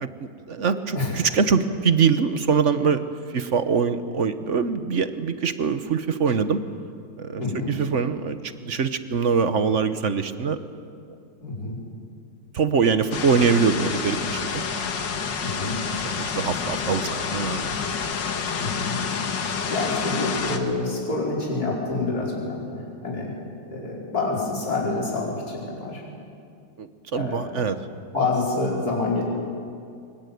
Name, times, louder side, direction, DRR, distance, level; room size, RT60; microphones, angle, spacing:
voice 1, 0.0-3.0 3.3-6.6 7.2-7.4 7.7-8.4 8.6-10.6 12.5-14.6 16.1-17.7 26.8-27.8, right 5 dB, 50° right, 11 dB, 1.2 m, -23 dB
voice 2, 7.4-7.8 11.4-11.8 15.4-15.8 18.6-19.0 19.4-23.3 23.7-26.0 27.1-27.7 28.1-29.2, left 3 dB, 55° left, -4 dB, 5.6 m, -27 dB
sound 1, 13.1-20.6, left 6 dB, 90° left, 2.2 m, -28 dB
24.5 x 21.5 x 9.4 m, 2.4 s
omnidirectional pair, 1.9 m